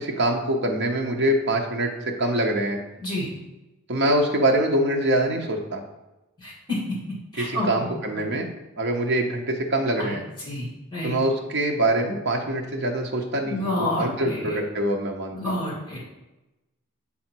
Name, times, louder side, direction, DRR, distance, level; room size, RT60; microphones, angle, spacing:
voice 1, 0.0-1.9 2.2-2.8 3.9-5.8 7.4-8.5 8.8-10.2 11.0-15.6, right 1 dB, 50° right, 1 dB, 0.8 m, -24 dB
voice 2, 6.4-6.8 7.3-8.2 10.0-10.2 10.5-11.1 13.4-14.6 15.3-16.0, left 1 dB, 20° left, -5 dB, 2.2 m, -29 dB
7.1 x 3.8 x 4.5 m, 1.0 s
head